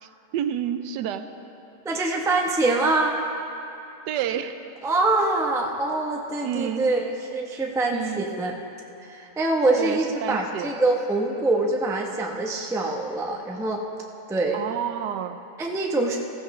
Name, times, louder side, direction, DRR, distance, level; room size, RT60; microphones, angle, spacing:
voice 1, 0.0-1.3 4.1-4.6 6.4-6.9 7.9-8.3 9.8-10.7 14.5-15.4, right 9 dB, 90° right, 10 dB, 1.2 m, -29 dB
voice 2, 1.8-3.2 4.8-7.1 7.3-8.5 9.0-13.8 14.3-14.6 15.6-16.2, right 2 dB, 5° right, 0 dB, 0.4 m, -24 dB
15.5 x 14.5 x 3.1 m, 2.8 s
omnidirectional pair, 1.8 m